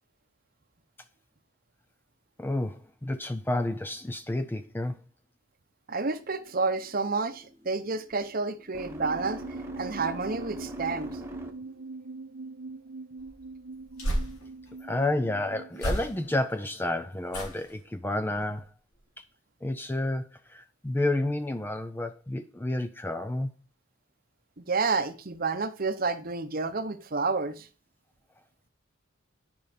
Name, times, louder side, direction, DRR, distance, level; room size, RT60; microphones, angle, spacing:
voice 1, 2.4-5.0 14.8-18.7 19.6-20.2 20.5-23.5, left 1 dB, 10° left, 0.4 m, -30 dB
voice 2, 5.9-9.4 9.8-11.1 24.6-27.7, right 4 dB, 40° right, 0.8 m, -30 dB
sound 1, 6.1-11.9, equal, 10° right, 1.1 m, -44 dB
sound 2, 9.0-16.4, right 3 dB, 80° right, 0.8 m, -42 dB
sound 3, 13.2-14.8 15.7-16.5 17.3-17.8 18.3-18.6 18.9-19.0, equal, 80° left, 4.0 m, -34 dB
9.9 x 5.5 x 5.1 m
head